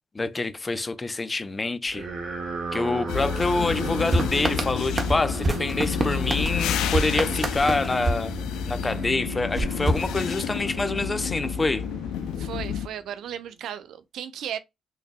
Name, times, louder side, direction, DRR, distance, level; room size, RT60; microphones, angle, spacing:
voice 1, 0.1-2.1 2.7-8.4 8.7-11.9, left 3 dB, 25° left, 0.5 m, -26 dB
sound 1, 1.9-13.3, right 3 dB, 55° right, 1.1 m, -36 dB
sound 2, 3.1-12.9, left 9 dB, 90° left, 0.3 m, -30 dB
sound 3, 4.1-9.0 9.5-10.8, right 2 dB, 35° right, 0.9 m, -28 dB
voice 2, 12.4-14.6, right 10 dB, 75° right, 0.5 m, -35 dB
4.8 x 2.6 x 2.2 m
cardioid pair, 90°, 0 cm